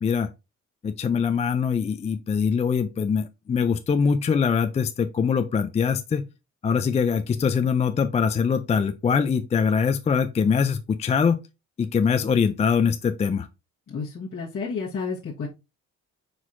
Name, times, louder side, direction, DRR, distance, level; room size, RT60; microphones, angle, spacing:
voice 1, 0.8-6.3 6.6-11.4 11.8-13.5, left 6 dB, 25° left, 0.3 m, -23 dB
voice 2, 13.9-15.5, left 5 dB, 45° left, 1.3 m, -31 dB
4.6 x 4.0 x 2.5 m
cardioid pair, 90°, 30 cm